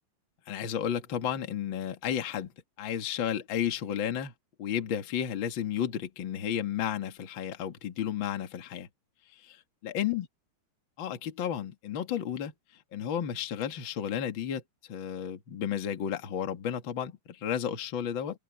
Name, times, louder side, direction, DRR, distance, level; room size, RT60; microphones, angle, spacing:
voice 1, 0.5-2.5 2.8-4.3 4.6-8.9 9.3-10.3 11.0-12.5 12.9-14.6 14.9-18.4, left 9 dB, 45° left, 1.6 m, -32 dB
open air
omnidirectional pair, 5.1 m